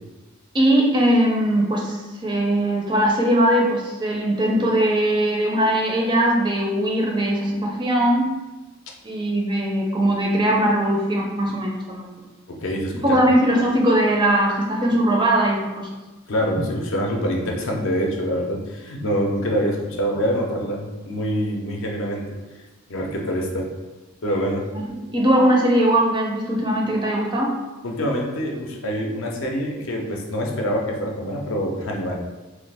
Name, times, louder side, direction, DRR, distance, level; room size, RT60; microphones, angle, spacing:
voice 1, 0.5-8.3 9.0-12.2 13.0-15.9 16.6-16.7 24.7-27.5, right 1 dB, 20° right, -1 dB, 0.4 m, -20 dB
voice 2, 12.5-13.2 16.3-22.2 22.9-23.7 24.2-24.7 27.8-32.1, equal, 65° left, 0 dB, 0.5 m, -25 dB
3.1 x 2.4 x 3.3 m, 1.1 s
head